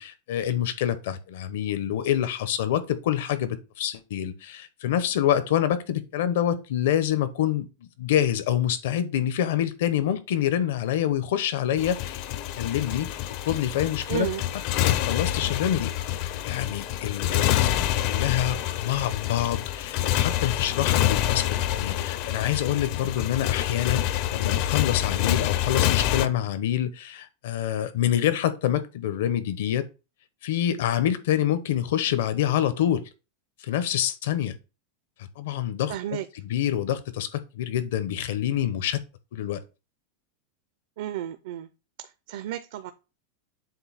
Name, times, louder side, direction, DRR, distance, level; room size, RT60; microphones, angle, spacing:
voice 1, 0.0-7.7 8.0-12.2 12.6-13.2 13.4-14.3 14.8-29.9 30.4-33.1 33.6-34.6 35.2-35.9 36.5-39.0 39.3-39.6, left 11 dB, 70° left, 0.9 m, -26 dB
Motorcycle, 11.8-26.3, left 13 dB, 45° left, 0.5 m, -27 dB
voice 2, 14.1-14.4 35.9-36.3 41.0-41.7 42.0-42.9, right 13 dB, 65° right, 0.5 m, -32 dB
7.7 x 2.7 x 5.7 m
supercardioid pair, 165°, 0 cm